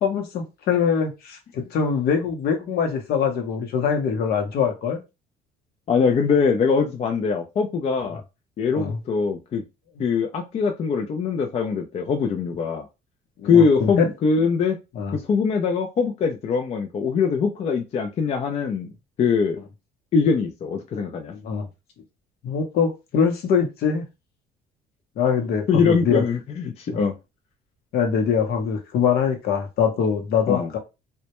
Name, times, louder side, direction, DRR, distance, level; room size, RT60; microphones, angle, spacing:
voice 1, 0.0-5.0 8.7-9.0 13.4-14.1 14.9-15.2 21.3-21.7 22.4-24.0 25.2-26.2 27.9-30.8, left 6 dB, 65° left, 0.7 m, -23 dB
voice 2, 5.9-8.2 8.6-9.6 10.0-12.9 13.4-14.8 15.1-18.9 19.2-19.6 20.1-21.3 25.7-27.1 30.5-30.7, left 5 dB, 40° left, 0.4 m, -22 dB
2.1 x 2.1 x 2.9 m
cardioid pair, 110°, 17 cm